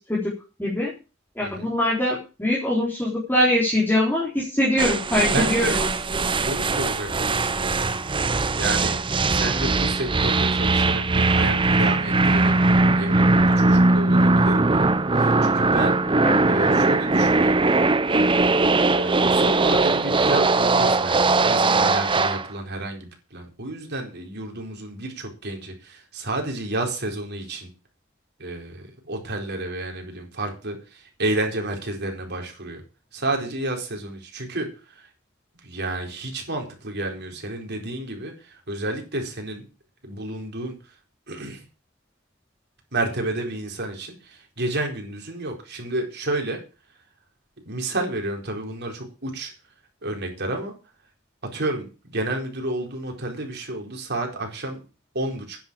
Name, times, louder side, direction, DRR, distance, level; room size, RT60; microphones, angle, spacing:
voice 1, 0.6-0.9 1.4-6.3 16.2-16.4, left 1 dB, 10° left, -6 dB, 4.0 m, -23 dB
sound 1, 4.8-22.5, right 3 dB, 25° right, 0.7 m, -20 dB
voice 2, 5.3-5.8 6.4-8.0 8.6-9.0 9.3-14.8 15.1-16.0 16.5-17.6 18.9-27.7 28.4-32.8 33.1-34.7 35.6-39.7 40.0-40.8 41.3-41.6 42.9-46.6 47.6-49.5 50.0-50.7 51.5-51.9 52.1-54.8 55.1-55.6, right 2 dB, 50° right, 3 dB, 4.4 m, -30 dB
10.5 x 8.0 x 8.8 m, 0.33 s
head